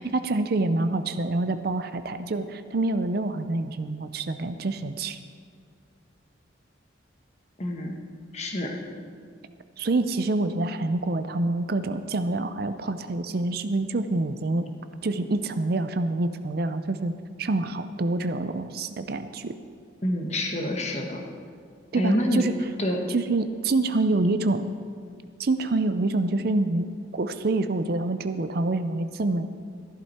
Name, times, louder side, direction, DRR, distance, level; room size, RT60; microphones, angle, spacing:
voice 1, 0.0-5.2 9.8-14.6 15.0-17.1 17.4-19.5 21.9-22.5 23.1-24.7 25.4-26.9 27.1-29.5, right 2 dB, 50° right, 11 dB, 0.5 m, -26 dB
voice 2, 7.6-7.9 8.3-8.8 20.0-21.2 21.9-22.4 22.8-23.0, left 1 dB, 35° left, 2 dB, 1.3 m, -27 dB
14.0 x 12.0 x 4.3 m, 2.1 s
head